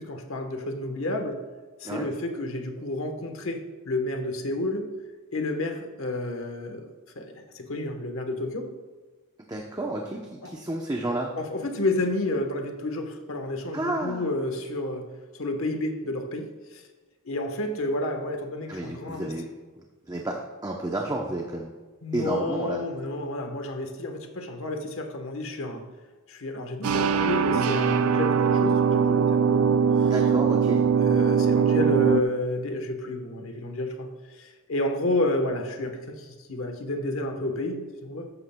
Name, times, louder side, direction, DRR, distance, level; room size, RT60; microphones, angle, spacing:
voice 1, 0.0-1.4 1.8-4.9 5.3-6.9 7.1-8.7 10.4-10.5 11.4-16.9 17.2-19.3 22.0-25.8 26.3-30.1 31.0-38.3, left 2 dB, 65° left, 5 dB, 1.2 m, -30 dB
voice 2, 9.5-11.3 13.7-14.3 18.7-19.5 20.1-21.7 22.1-22.8 30.1-30.8, right 1 dB, 20° right, 0 dB, 0.7 m, -31 dB
sound 1, 26.8-32.2, right 6 dB, 80° right, 0.4 m, -21 dB
14.0 x 11.0 x 2.3 m, 1.3 s
head